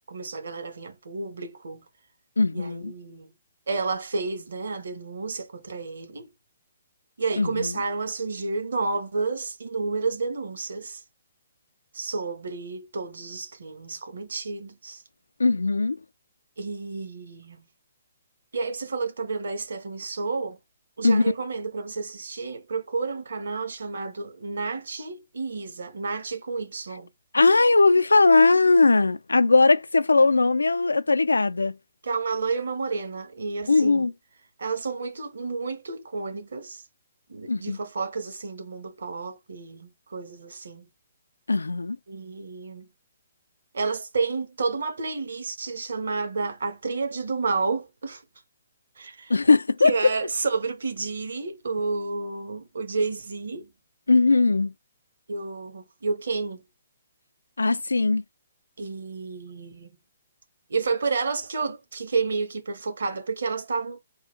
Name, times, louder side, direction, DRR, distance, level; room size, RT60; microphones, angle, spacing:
voice 1, 0.1-1.8 2.5-3.3 3.7-6.3 7.2-11.0 11.9-15.0 16.6-17.7 18.5-20.6 21.0-27.1 32.0-34.1 34.6-36.8 37.3-40.9 42.1-42.9 43.7-48.2 49.0-49.3 49.8-53.7 55.3-56.6 58.8-60.0 60.7-64.0, right 4 dB, 65° right, 1.2 m, -30 dB
voice 2, 2.4-2.9 7.4-7.7 15.4-16.0 21.0-21.2 27.3-31.8 33.7-34.1 37.5-37.8 41.5-42.0 49.3-49.9 54.1-54.7 57.6-58.2, left 3 dB, 85° left, 0.4 m, -19 dB
3.7 x 2.4 x 4.5 m
figure-of-eight pair, 130°, 0 cm